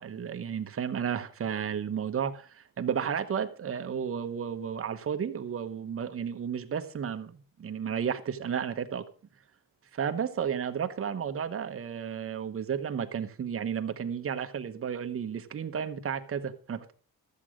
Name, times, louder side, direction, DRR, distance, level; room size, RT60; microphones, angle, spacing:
voice 1, 0.0-9.0 9.9-16.9, right 7 dB, 40° right, 1.1 m, -33 dB
13.5 x 7.6 x 5.0 m
cardioid pair, 130°, 34 cm